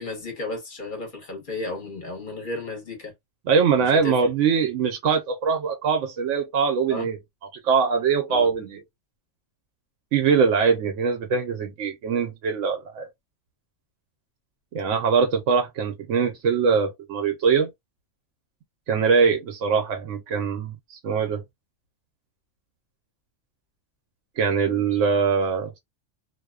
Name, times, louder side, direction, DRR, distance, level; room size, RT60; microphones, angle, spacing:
voice 1, 0.0-3.1 3.8-4.2 6.9-7.1 8.3-8.5, left 2 dB, 45° left, 1.1 m, -33 dB
voice 2, 3.5-7.2 7.5-8.8 10.1-13.1 14.7-17.7 18.9-21.4 24.4-25.7, right 5 dB, 90° right, 1.0 m, -22 dB
2.6 x 2.1 x 2.3 m
omnidirectional pair, 1.2 m